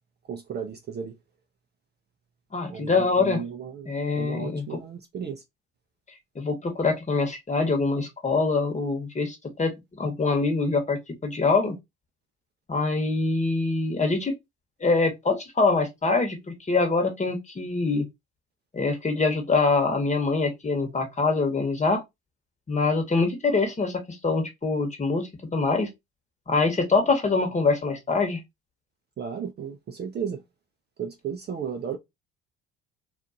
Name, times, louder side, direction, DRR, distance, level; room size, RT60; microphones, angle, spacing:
voice 1, 0.3-1.1 2.7-5.4 29.2-30.4 31.0-32.0, right 7 dB, 30° right, 0.5 m, -34 dB
voice 2, 2.5-3.4 3.9-4.8 6.3-9.7 10.0-11.8 12.7-14.3 14.8-18.0 18.7-22.0 22.7-25.9 26.5-28.4, left 3 dB, 20° left, 1.1 m, -24 dB
2.5 x 2.4 x 2.6 m
hypercardioid pair, 70°, 32 cm